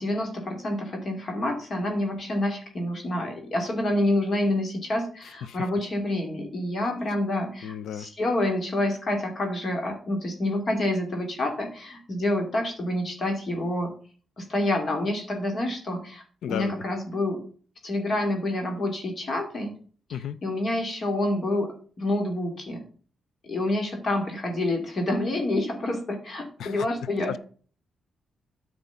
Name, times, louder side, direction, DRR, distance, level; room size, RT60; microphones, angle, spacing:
voice 1, 0.0-13.9 14.4-17.4 17.8-19.7 20.1-22.8 23.5-27.3, left 1 dB, 35° left, 3 dB, 2.6 m, -28 dB
voice 2, 7.6-8.1 16.4-16.7 20.1-20.4 26.6-26.9 27.3-27.4, left 9 dB, 80° left, 17 dB, 0.6 m, -33 dB
9.3 x 5.0 x 7.1 m, 0.41 s
cardioid pair, 135°, 0 cm